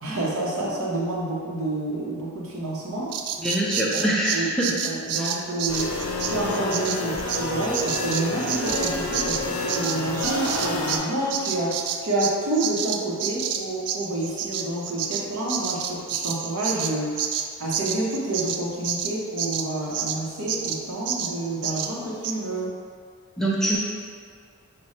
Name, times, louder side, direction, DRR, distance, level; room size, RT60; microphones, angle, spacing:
voice 1, 0.0-3.2 3.9-4.5 4.8-5.9 6.3-17.2 17.6-22.8, right 2 dB, 70° right, -4 dB, 0.9 m, -28 dB
Bird vocalization bird call bird song, 3.1-11.0 11.3-20.2 20.5-20.8 21.1-21.3 21.6-21.9 22.2-22.4, right 8 dB, 90° right, 0.3 m, -29 dB
voice 2, 3.4-4.8 5.1-5.3 23.4-23.8, right 1 dB, ahead, -5 dB, 0.5 m, -24 dB
Bowed string instrument, 5.7-12.0, left 5 dB, 80° left, 0.4 m, -35 dB
sound 1, 5.7-11.0, left 1 dB, 40° left, 0.8 m, -30 dB
5.0 x 2.2 x 4.1 m, 2.1 s
head